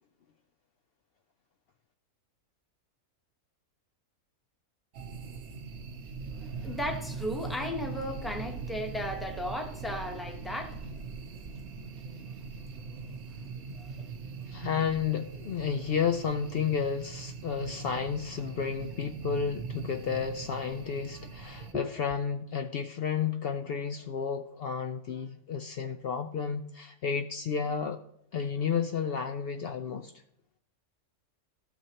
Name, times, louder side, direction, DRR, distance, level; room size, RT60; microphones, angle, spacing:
sound 1, 4.9-21.7, right 5 dB, 60° right, 0.9 m, -41 dB
voice 1, 6.3-11.0 12.0-14.4 17.6-17.8 21.7-21.8, left 1 dB, ahead, 0.9 m, -37 dB
voice 2, 14.5-28.0 28.3-30.1, left 6 dB, 80° left, 0.5 m, -32 dB
15.5 x 6.7 x 2.9 m
omnidirectional pair, 1.6 m